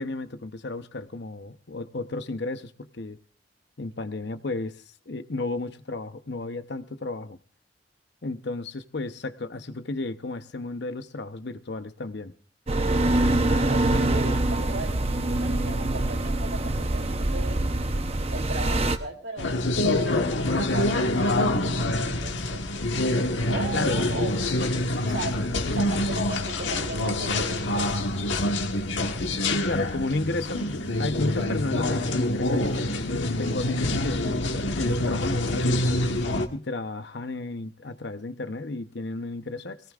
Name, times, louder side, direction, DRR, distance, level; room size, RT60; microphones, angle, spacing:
voice 1, 0.0-3.2 3.8-4.8 5.1-7.4 8.2-12.3 23.7-24.0 29.4-35.9 36.5-39.8, left 2 dB, 65° left, 10 dB, 0.9 m, -33 dB
sound 1, 12.7-19.0, right 2 dB, 35° right, 0.8 m, -24 dB
voice 2, 13.5-17.7 18.3-19.5 20.0-22.6 23.5-24.3 25.0-25.4 25.7-28.1, right 2 dB, 75° right, 4 dB, 3.1 m, -37 dB
sound 2, 19.4-36.5, left 1 dB, 85° left, 1.4 m, -26 dB
22.0 x 17.5 x 2.5 m, 0.39 s
head